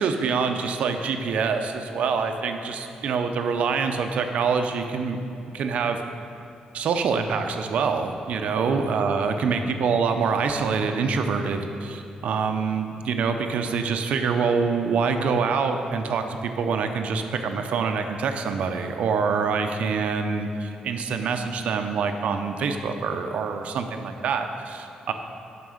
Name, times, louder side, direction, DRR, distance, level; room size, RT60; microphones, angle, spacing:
voice 1, 0.0-5.2 5.5-6.0 6.7-25.1, right 5 dB, 60° right, 6 dB, 0.6 m, -25 dB
9.3 x 6.0 x 6.4 m, 2.7 s
wide cardioid pair, 170°, 2 cm